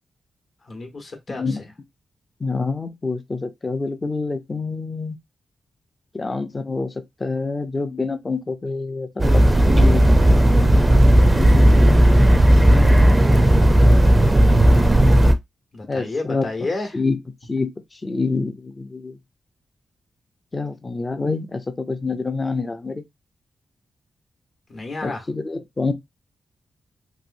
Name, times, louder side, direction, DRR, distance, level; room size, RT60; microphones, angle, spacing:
voice 1, 0.7-1.6 15.7-17.0 24.7-25.2, left 3 dB, 45° left, 1.0 m, -30 dB
voice 2, 1.3-1.7 2.4-5.2 6.1-6.9 7.2-9.1 9.7-10.1 11.3-12.4 12.7-13.1 15.9-16.5 16.9-17.2 17.5-17.7 18.0-19.2 20.5-23.0 25.0-25.9, left 3 dB, 25° left, 0.6 m, -26 dB
sound 1, 9.2-15.3, right 1 dB, 15° right, 0.5 m, -14 dB
3.0 x 2.9 x 2.6 m
cardioid pair, 105°, 0 cm